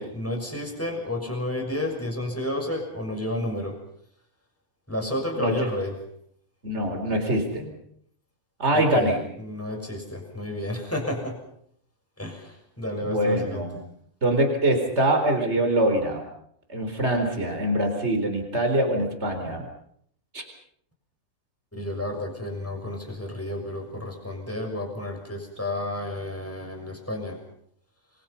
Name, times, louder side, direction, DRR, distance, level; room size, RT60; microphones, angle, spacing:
voice 1, 0.0-3.8 4.9-6.0 8.7-9.1 9.4-11.4 12.2-13.7 21.7-27.4, left 1 dB, 10° left, 2 dB, 6.4 m, -31 dB
voice 2, 5.4-5.7 6.6-7.7 8.6-9.2 13.0-13.7 14.2-16.2 16.7-19.7 20.3-20.4, right 1 dB, 45° right, 4 dB, 4.4 m, -24 dB
29.0 x 23.0 x 5.7 m, 0.67 s
omnidirectional pair, 1.6 m